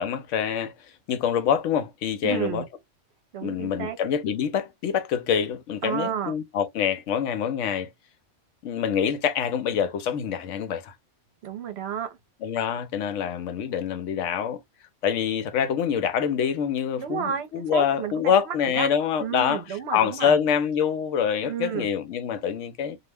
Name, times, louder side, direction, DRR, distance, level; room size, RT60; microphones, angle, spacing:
voice 1, 0.0-2.6 3.4-7.9 8.6-10.9 12.4-14.6 15.0-19.6 19.9-23.0, left 8 dB, 80° left, 0.9 m, -25 dB
voice 2, 2.2-2.7 3.3-4.0 5.8-6.3 11.4-12.2 17.0-18.9 19.2-20.4 21.4-21.9, right 8 dB, 65° right, 0.8 m, -31 dB
2.4 x 2.1 x 3.3 m
omnidirectional pair, 1.3 m